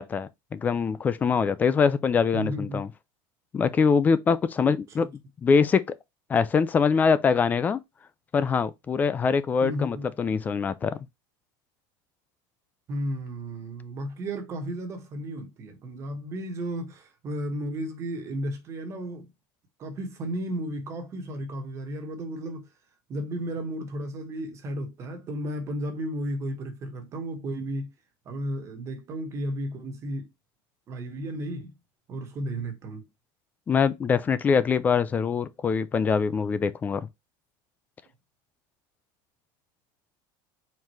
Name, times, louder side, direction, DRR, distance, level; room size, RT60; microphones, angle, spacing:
voice 1, 0.0-2.9 3.5-5.1 5.4-5.8 6.3-7.8 8.3-11.0 33.7-37.1, left 5 dB, 15° left, 0.4 m, -23 dB
voice 2, 2.3-2.9 4.6-5.1 9.6-10.1 12.9-19.3 19.8-22.7 23.1-27.9 28.2-30.3 30.9-31.7 32.1-33.1, right 1 dB, 25° right, 1.2 m, -33 dB
4.5 x 3.7 x 3.1 m
cardioid pair, 170°, 11 cm